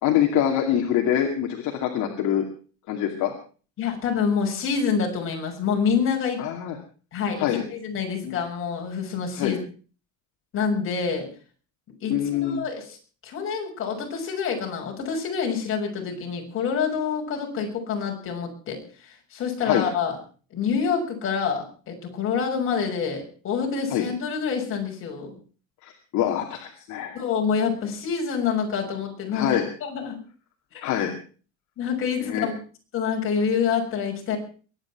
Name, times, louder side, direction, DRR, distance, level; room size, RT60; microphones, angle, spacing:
voice 1, 0.0-2.5 2.9-3.3 6.4-6.8 7.4-7.6 8.2-8.4 9.4-9.6 12.1-12.7 19.6-19.8 23.9-24.1 25.8-27.2 29.3-29.6 30.8-31.1 32.2-32.5, left 10 dB, 55° left, 3 dB, 2.5 m, -25 dB
voice 2, 3.8-6.4 7.1-9.6 10.5-11.3 12.0-13.0 13.2-20.2 20.5-25.4 27.1-30.2 30.7-30.9 31.8-32.5 32.9-34.4, left 6 dB, 35° left, 0 dB, 6.6 m, -27 dB
23.0 x 10.0 x 6.0 m, 0.40 s
cardioid pair, 160°, 35 cm